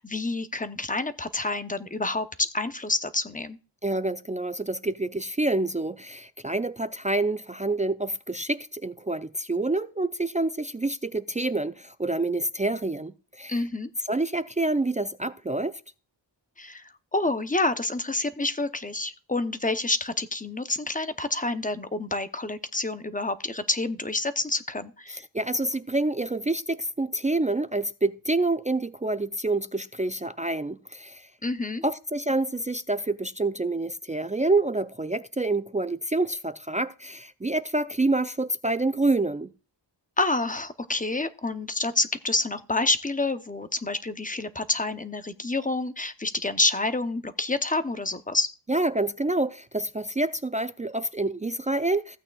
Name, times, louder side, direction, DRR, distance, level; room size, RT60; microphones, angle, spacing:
voice 1, 0.0-3.6 13.5-13.9 16.6-25.2 31.4-31.8 40.2-48.5, left 2 dB, 20° left, 0.7 m, -28 dB
voice 2, 3.8-13.6 14.1-15.8 25.1-31.3 31.8-39.5 48.7-52.2, right 2 dB, 20° right, 0.4 m, -27 dB
15.5 x 8.6 x 2.3 m
wide cardioid pair, 85°, 43 cm